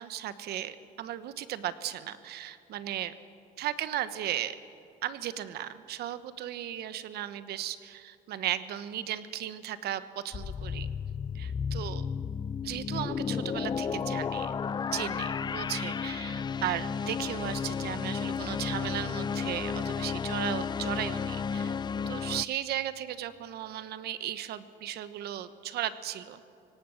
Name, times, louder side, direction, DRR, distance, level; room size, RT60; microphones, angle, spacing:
voice 1, 0.0-3.2 3.6-4.6 5.0-10.9 11.3-12.1 12.6-14.5 14.9-21.8 22.1-26.4, right 12 dB, 70° right, 13 dB, 1.0 m, -36 dB
sound 1, 10.3-22.4, left 6 dB, 25° left, 0.4 m, -33 dB
24.0 x 18.0 x 6.5 m, 2.5 s
cardioid pair, 110°, 17 cm